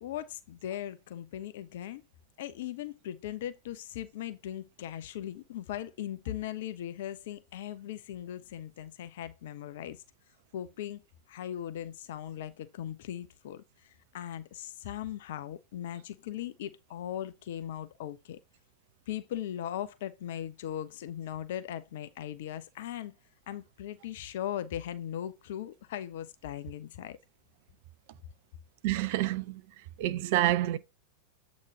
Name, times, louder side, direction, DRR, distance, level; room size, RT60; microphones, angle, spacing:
voice 1, 0.0-2.0 2.4-10.0 10.5-11.0 11.3-18.4 19.1-23.1 23.5-27.2 29.1-29.2, left 11 dB, 55° left, 0.6 m, -39 dB
voice 2, 28.8-29.5 30.0-30.8, right 14 dB, 50° right, 0.6 m, -27 dB
8.1 x 5.1 x 2.8 m
figure-of-eight pair, 90°, 0 cm